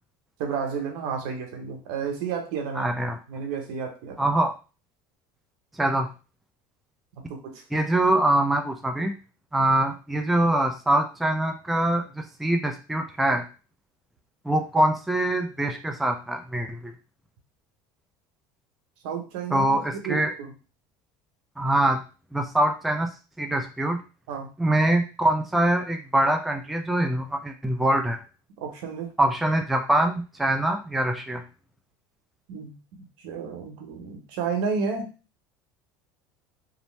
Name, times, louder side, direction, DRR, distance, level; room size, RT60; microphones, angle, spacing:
voice 1, 0.4-2.9 3.3-4.2 7.1-7.6 19.0-20.5 24.3-24.5 28.6-29.1 32.5-35.1, right 6 dB, 75° right, 3 dB, 0.9 m, -32 dB
voice 2, 2.7-3.2 4.2-4.5 5.7-6.1 7.7-9.1 9.5-13.4 14.4-16.9 19.5-20.3 21.6-22.0 22.3-23.1 23.4-24.0 24.6-28.2 29.2-31.4, right 1 dB, ahead, 4 dB, 0.3 m, -24 dB
2.6 x 2.0 x 3.1 m, 0.32 s
supercardioid pair, 110°, 11 cm